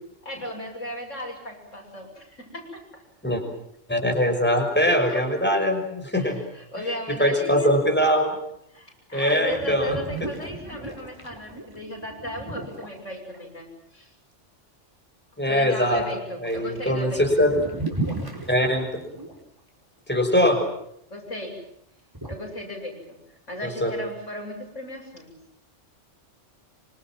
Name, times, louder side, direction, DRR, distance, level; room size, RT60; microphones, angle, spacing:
voice 1, 0.2-3.0 5.1-5.2 6.1-7.7 8.7-13.7 13.9-14.1 15.4-17.2 21.1-21.5 22.3-23.2 23.5-25.3, left 1 dB, 85° left, 1 dB, 8.3 m, -36 dB
voice 2, 3.9-6.4 7.2-8.4 9.1-10.0 15.4-16.0 16.4-17.5 18.5-18.9 20.1-20.6 23.6-23.9, equal, 10° left, 4 dB, 6.0 m, -22 dB
sound 1, 9.5-13.4 15.9-16.1 16.4-19.4 22.1-22.3, right 2 dB, 15° right, 5.0 m, -35 dB
26.5 x 26.0 x 7.6 m, 0.75 s
omnidirectional pair, 1.3 m